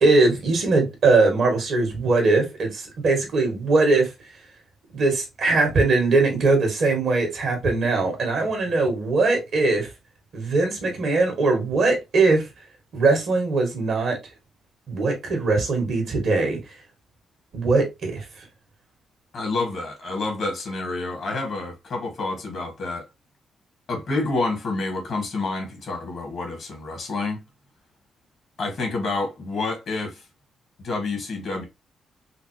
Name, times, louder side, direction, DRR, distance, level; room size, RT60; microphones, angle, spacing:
voice 1, 0.0-4.1 4.9-9.9 10.3-12.5 12.9-14.2 14.9-16.6 17.5-18.2, right 3 dB, 70° right, 1.8 m, -21 dB
voice 2, 19.3-23.1 23.9-27.4 28.6-30.2 30.8-31.6, left 3 dB, 65° left, 1.9 m, -28 dB
5.0 x 2.0 x 3.1 m
supercardioid pair, 55°, 0 cm